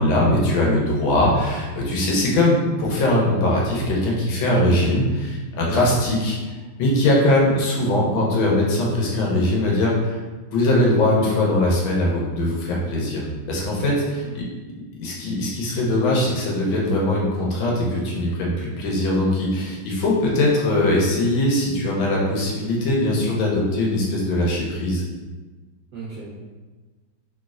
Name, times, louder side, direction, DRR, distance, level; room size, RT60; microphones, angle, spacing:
voice 1, 0.0-6.4 6.8-10.2 10.5-14.4 15.0-25.0, left 1 dB, 75° left, -3 dB, 1.4 m, -21 dB
voice 2, 25.9-26.3, right 4 dB, 75° right, -7 dB, 0.9 m, -35 dB
3.1 x 3.1 x 2.4 m, 1.3 s
omnidirectional pair, 2.3 m